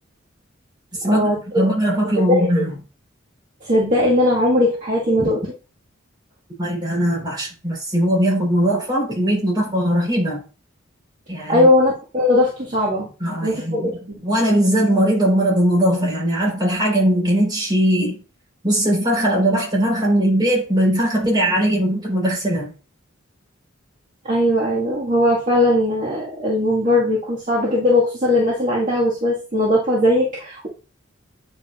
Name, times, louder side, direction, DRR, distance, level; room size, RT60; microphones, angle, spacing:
voice 1, 1.0-1.4 2.3-2.5 3.6-5.4 11.5-13.1 13.4-13.9 24.2-30.7, left 1 dB, 40° right, 1.8 m, -19 dB
voice 2, 1.5-2.7 6.6-10.4 11.3-11.7 13.2-13.9 14.2-18.2 18.6-22.7, right 1 dB, 20° right, 4.0 m, -19 dB
9.3 x 5.4 x 2.5 m
head